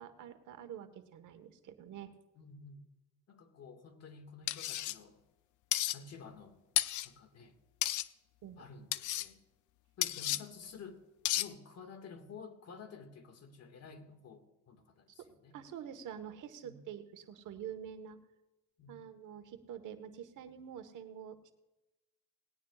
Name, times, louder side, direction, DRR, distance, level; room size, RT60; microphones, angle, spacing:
voice 1, 0.0-2.1 8.4-8.7 10.3-10.4 15.2-15.3 15.5-18.2 18.9-21.5, right 9 dB, 80° right, 8 dB, 1.3 m, -47 dB
voice 2, 2.4-2.8 3.3-5.2 5.9-6.6 7.0-7.6 8.6-9.4 10.0-11.0 11.4-15.6 16.6-16.8 18.8-18.9, left 5 dB, 55° left, 7 dB, 1.9 m, -51 dB
sound 1, 4.5-5.0 5.7-6.0 6.8-7.1 7.8-8.1 8.9-9.3 10.0-10.4 11.3-11.5, left 14 dB, 80° left, 0.6 m, -32 dB
19.0 x 17.5 x 2.4 m, 1.0 s
cardioid pair, 90°, 30 cm